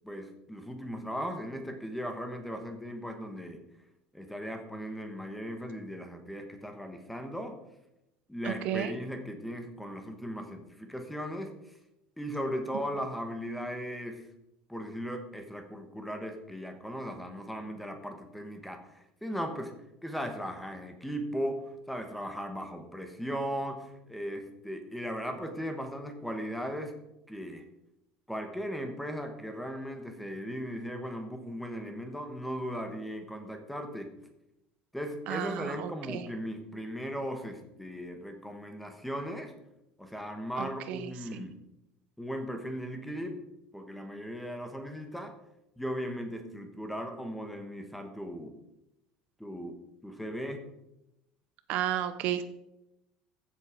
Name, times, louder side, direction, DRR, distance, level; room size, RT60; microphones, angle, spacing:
voice 1, 0.0-3.6 4.1-7.6 8.3-11.6 12.2-14.3 14.7-19.7 20.0-27.0 27.3-27.6 28.3-34.1 34.9-39.5 40.0-41.5 42.2-43.4 43.7-45.3 45.8-48.5 49.4-49.8 50.0-50.7, equal, ahead, 5 dB, 1.2 m, -37 dB
voice 2, 8.4-8.9 35.3-36.3 40.6-41.5 51.7-52.4, right 11 dB, 50° right, 11 dB, 0.7 m, -33 dB
15.0 x 7.6 x 5.0 m, 0.89 s
cardioid pair, 180°, 3 cm